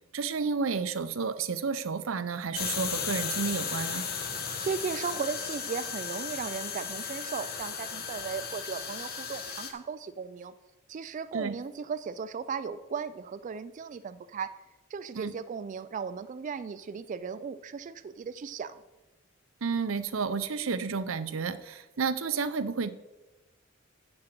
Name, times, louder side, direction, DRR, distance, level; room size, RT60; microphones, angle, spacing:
voice 1, 0.1-4.0 11.3-11.6 15.1-15.3 19.6-22.9, right 5 dB, 85° right, 13 dB, 0.6 m, -31 dB
sound 1, 2.5-9.7, left 6 dB, 50° left, 1.3 m, -35 dB
voice 2, 4.6-10.5 10.9-14.5 14.9-18.8, right 6 dB, 40° right, 12 dB, 0.3 m, -36 dB
7.8 x 7.5 x 6.0 m, 1.1 s
head